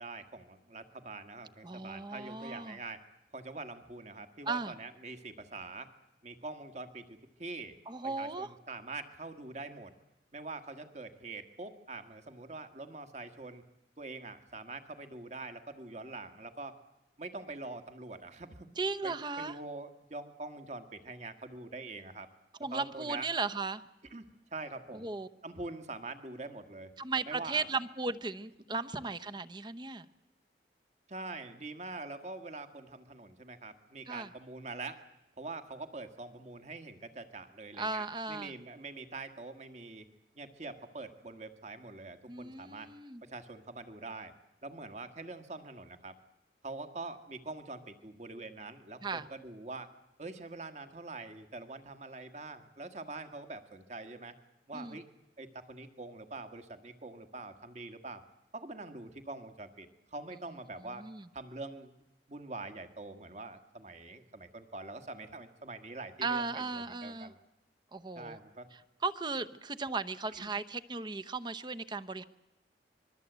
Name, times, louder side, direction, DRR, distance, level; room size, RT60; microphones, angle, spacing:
voice 1, 0.0-3.0 3.3-5.9 6.2-7.8 8.0-9.9 10.3-13.6 14.0-16.8 17.2-18.7 19.0-22.3 22.7-23.3 24.1-25.1 25.4-26.9 27.3-27.7 28.7-28.8 31.1-35.0 35.4-40.1 40.4-42.9 43.2-44.3 44.6-46.2 46.6-49.9 50.2-54.4 54.7-55.1 55.4-58.2 58.5-61.1 61.3-61.9 62.3-67.4 68.2-68.7 70.4-70.5, right 3 dB, 40° right, 8 dB, 1.7 m, -44 dB
voice 2, 1.6-2.8 4.5-4.7 7.9-8.5 18.8-19.6 22.6-23.8 24.9-25.3 27.0-30.1 34.1-34.3 37.8-38.5 42.3-43.2 49.0-49.3 54.7-55.0 61.0-61.3 66.2-67.3 67.9-68.4 69.0-72.2, right 4 dB, 25° right, 11 dB, 0.8 m, -36 dB
25.5 x 22.0 x 8.1 m, 0.96 s
head